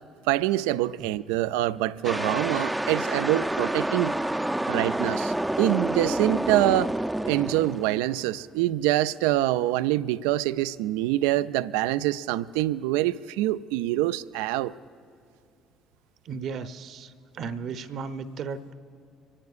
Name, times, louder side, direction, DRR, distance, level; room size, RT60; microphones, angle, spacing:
voice 1, 0.3-4.1 4.7-6.9 7.3-14.7, right 15 dB, 80° right, 0.3 m, -25 dB
sound 1, 2.0-8.3, right 1 dB, 10° right, 0.5 m, -28 dB
voice 2, 16.2-18.7, right 5 dB, 60° right, 0.8 m, -35 dB
24.5 x 18.5 x 2.5 m
hypercardioid pair, 55°, 0 cm